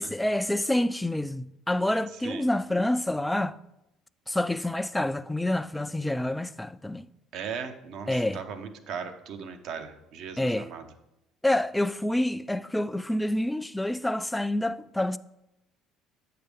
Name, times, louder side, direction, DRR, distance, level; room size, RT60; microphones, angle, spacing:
voice 1, 0.0-3.6 4.3-7.1 8.1-8.4 10.4-10.7 11.4-15.2, left 1 dB, 5° left, 0.3 m, -27 dB
voice 2, 7.3-10.8, right 6 dB, 65° right, 0.8 m, -38 dB
8.1 x 6.7 x 3.4 m
supercardioid pair, 85°, 0 cm